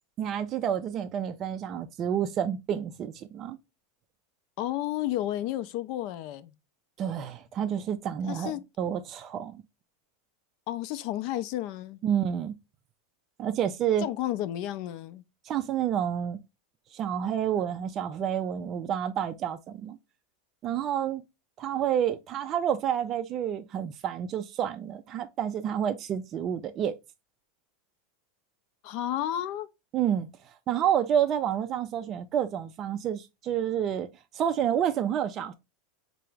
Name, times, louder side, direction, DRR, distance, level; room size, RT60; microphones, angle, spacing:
voice 1, 0.2-3.6 7.0-9.6 12.0-12.5 13.4-14.1 15.4-16.4 16.9-20.0 20.6-21.2 21.6-26.9 29.9-34.1 34.3-35.5, right 9 dB, 35° right, 0.3 m, -29 dB
voice 2, 4.6-6.5 8.3-8.6 10.7-12.0 14.0-15.2 28.8-29.7, left 13 dB, 55° left, 0.4 m, -32 dB
4.5 x 2.0 x 3.2 m
supercardioid pair, 130°, 0 cm